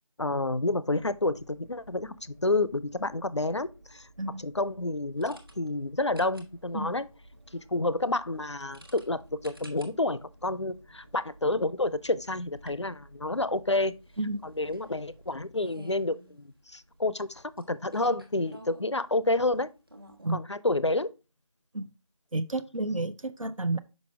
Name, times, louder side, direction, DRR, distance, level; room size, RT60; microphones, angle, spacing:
voice 1, 0.2-4.1 4.4-7.1 7.5-13.9 14.4-19.7 20.3-21.1, left 2 dB, 55° left, 0.5 m, -29 dB
sound 1, 0.9-15.4, right 1 dB, 25° right, 1.2 m, -56 dB
sound 2, 5.2-20.4, right 1 dB, 40° right, 1.3 m, -54 dB
voice 2, 22.3-23.8, right 2 dB, 70° right, 0.6 m, -31 dB
6.1 x 5.3 x 3.4 m
figure-of-eight pair, 175°, 18 cm